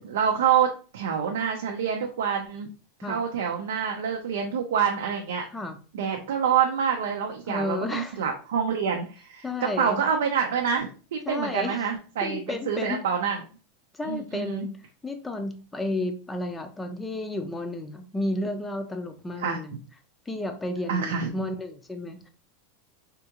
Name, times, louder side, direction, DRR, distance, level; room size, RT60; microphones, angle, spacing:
voice 1, 0.0-2.7 3.1-5.4 5.9-13.4 14.1-14.7 19.4-19.6 20.9-21.3, right 7 dB, 90° right, 2 dB, 0.5 m, -27 dB
voice 2, 7.5-8.2 9.4-10.0 11.3-11.8 12.2-13.0 13.9-14.7 15.0-19.7 20.3-22.3, left 2 dB, 10° left, 6 dB, 0.4 m, -32 dB
3.6 x 2.3 x 2.9 m, 0.36 s
supercardioid pair, 155°, 0 cm